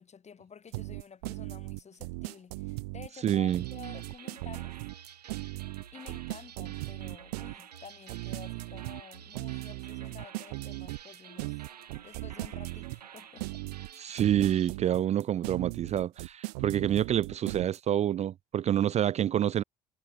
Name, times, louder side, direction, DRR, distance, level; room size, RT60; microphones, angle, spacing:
voice 1, 0.0-4.8 5.9-11.6 12.0-13.6, left 6 dB, 35° left, 2.3 m, -50 dB
sound 1, 0.7-17.8, right 26 dB, 70° right, 0.6 m, -38 dB
voice 2, 3.2-3.6 14.0-19.6, right 11 dB, 35° right, 0.4 m, -27 dB
sound 2, 3.5-14.8, right 8 dB, 85° right, 1.8 m, -50 dB
hypercardioid pair, 55°, 20 cm